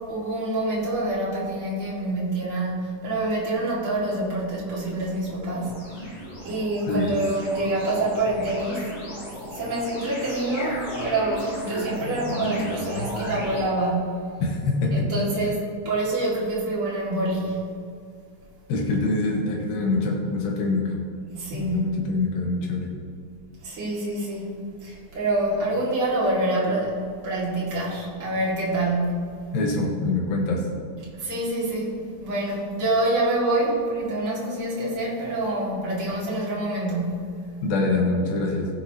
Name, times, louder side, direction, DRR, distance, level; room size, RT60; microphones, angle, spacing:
voice 1, 0.1-5.8 6.4-8.9 9.5-14.2 14.9-15.6 15.8-17.7 21.3-21.9 23.6-29.3 31.2-37.4, right 2 dB, 40° right, -7 dB, 2.5 m, -26 dB
sound 1, 4.6-13.6, left 1 dB, 40° left, 3.7 m, -35 dB
voice 2, 14.4-15.2 18.7-21.0 21.5-22.9 29.5-30.6 37.6-38.7, left 3 dB, 70° left, 0 dB, 2.9 m, -24 dB
15.5 x 8.0 x 2.9 m, 2.3 s
omnidirectional pair, 4.8 m